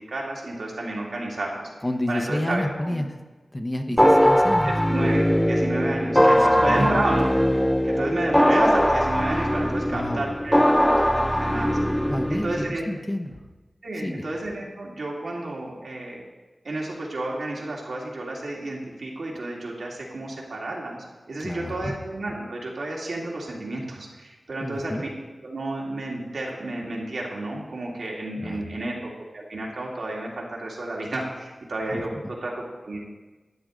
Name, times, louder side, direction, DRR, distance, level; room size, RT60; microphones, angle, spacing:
voice 1, 0.1-1.7 2.1-3.0 4.0-4.2 4.6-7.3 7.8-12.8 13.8-16.2 16.6-25.2 25.4-33.0, right 2 dB, 80° right, -3 dB, 2.5 m, -31 dB
voice 2, 1.8-3.2 3.5-4.7 6.4-7.0 9.8-10.3 12.0-13.4 13.9-14.3 21.4-21.9 24.6-25.0 28.4-28.6 31.9-32.3, left 1 dB, 20° left, 5 dB, 1.1 m, -30 dB
sound 1, 4.0-12.7, equal, 5° left, 0.4 m, -20 dB
12.5 x 9.6 x 3.9 m, 1.2 s
wide cardioid pair, 65°, 0 cm